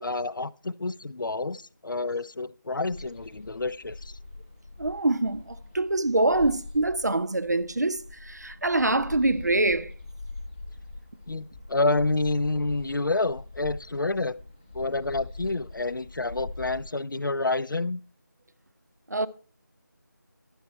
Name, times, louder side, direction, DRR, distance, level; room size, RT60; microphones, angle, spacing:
voice 1, 0.0-4.1 11.3-14.4 14.7-18.0, left 2 dB, 80° left, 0.5 m, -28 dB
sound 1, 2.9-16.8, left 2 dB, 10° left, 0.8 m, -43 dB
voice 2, 4.8-9.9 19.1-19.3, right 2 dB, 55° right, 0.7 m, -25 dB
11.5 x 7.3 x 4.3 m
figure-of-eight pair, 180°, 11 cm